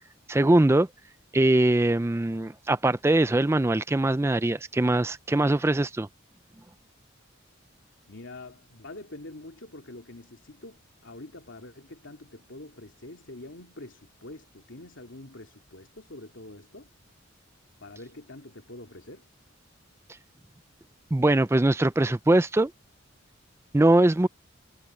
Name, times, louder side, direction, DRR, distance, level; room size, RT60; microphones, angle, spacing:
voice 1, 0.3-0.9 1.3-6.1 21.1-22.7 23.7-24.3, right 1 dB, 10° right, 0.3 m, -22 dB
voice 2, 8.1-16.9 17.8-19.3, left 2 dB, 65° left, 2.5 m, -45 dB
head